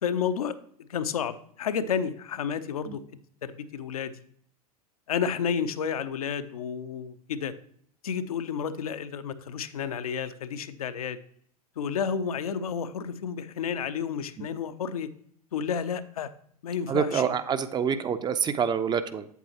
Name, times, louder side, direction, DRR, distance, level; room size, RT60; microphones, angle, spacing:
voice 1, 0.0-0.6 0.9-3.0 3.4-4.1 5.1-7.5 8.0-11.2 11.8-15.1 15.5-16.3 16.6-17.3, left 7 dB, 70° left, 11 dB, 0.7 m, -31 dB
voice 2, 16.9-19.3, right 7 dB, 20° right, 11 dB, 0.6 m, -27 dB
8.3 x 8.2 x 2.9 m, 0.63 s
figure-of-eight pair, 90°, 19 cm